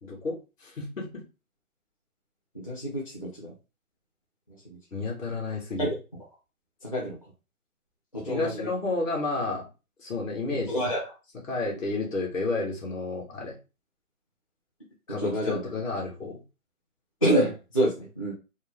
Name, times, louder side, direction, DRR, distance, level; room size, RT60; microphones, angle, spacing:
voice 1, 0.0-1.2 4.9-5.9 8.3-9.7 10.0-10.7 11.5-13.6 15.1-16.4, left 3 dB, 60° left, -2 dB, 2.0 m, -31 dB
voice 2, 2.5-3.5 4.6-4.8 5.8-5.9 6.8-7.2 8.1-8.7 10.7-11.0 15.2-15.6 17.2-18.3, right 1 dB, 25° left, -7 dB, 0.6 m, -27 dB
4.3 x 2.0 x 3.6 m, 0.30 s
hypercardioid pair, 170°, 44 cm